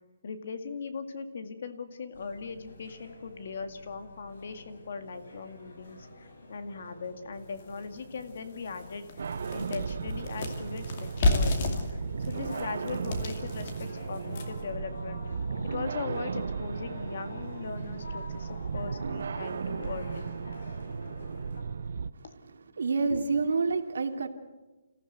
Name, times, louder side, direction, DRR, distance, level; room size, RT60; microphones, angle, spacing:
voice 1, 0.2-15.2 15.6-20.4 22.2-22.3, left 5 dB, 45° left, 9 dB, 2.0 m, -39 dB
sound 1, 2.1-21.6, left 2 dB, 75° left, 6.8 m, -48 dB
sound 2, 7.6-7.7 8.2-8.3 8.7-14.7, left 2 dB, 30° left, 2.5 m, -31 dB
sound 3, 9.2-22.1, right 5 dB, 55° right, 0.7 m, -36 dB
voice 2, 22.8-24.3, right 4 dB, 75° right, 6 dB, 2.6 m, -28 dB
29.0 x 15.5 x 8.0 m, 1.2 s
hypercardioid pair, 180°, 0 cm